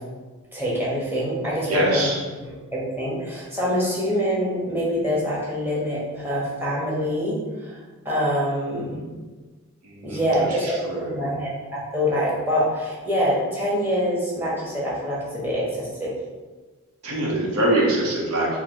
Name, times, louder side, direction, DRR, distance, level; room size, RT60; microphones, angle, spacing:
voice 1, 0.5-2.1 2.4-7.8 8.0-9.1 10.0-10.7 11.0-16.1, equal, 10° right, -7 dB, 1.0 m, -25 dB
voice 2, 1.7-2.2 9.8-10.2 10.8-11.1 17.0-18.5, right 1 dB, 85° right, -2 dB, 1.0 m, -23 dB
3.7 x 2.1 x 4.4 m, 1.3 s
head